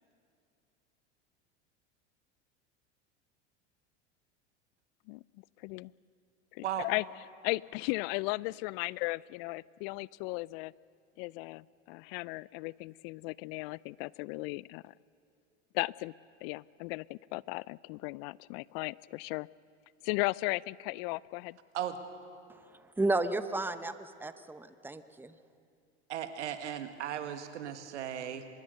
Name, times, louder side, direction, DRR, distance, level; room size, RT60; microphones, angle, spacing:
voice 1, 5.6-5.9 6.5-7.0 7.4-10.7 11.2-14.9 15.7-16.1 16.4-19.5 20.0-21.6, left 24 dB, 60° left, 24 dB, 0.4 m, -36 dB
voice 2, 22.5-25.3, right 2 dB, 5° right, 11 dB, 0.9 m, -33 dB
voice 3, 26.1-28.5, right 10 dB, 85° right, 9 dB, 1.7 m, -36 dB
24.5 x 21.5 x 6.6 m, 2.4 s
hypercardioid pair, 90°, 34 cm